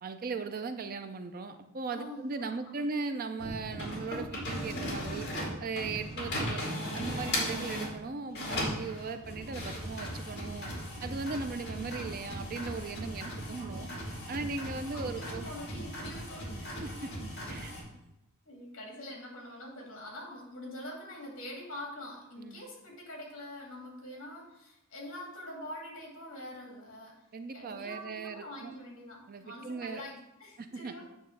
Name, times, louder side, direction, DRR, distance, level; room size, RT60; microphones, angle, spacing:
voice 1, 0.0-5.3 5.6-6.6 6.9-10.7 11.0-13.9 14.3-15.5 16.8-17.1 17.5-17.7 22.4-22.6 27.3-28.7 29.3-30.0 30.6-30.9, right 4 dB, 40° right, 8 dB, 0.4 m, -38 dB
voice 2, 1.9-2.7 13.6-14.0 14.9-16.7 18.4-27.2 27.5-31.1, left 1 dB, 65° left, -2 dB, 2.6 m, -45 dB
sound 1, 3.4-7.9 8.3-17.8, equal, 50° left, 2.3 m, -37 dB
8.9 x 3.2 x 6.5 m, 0.85 s
head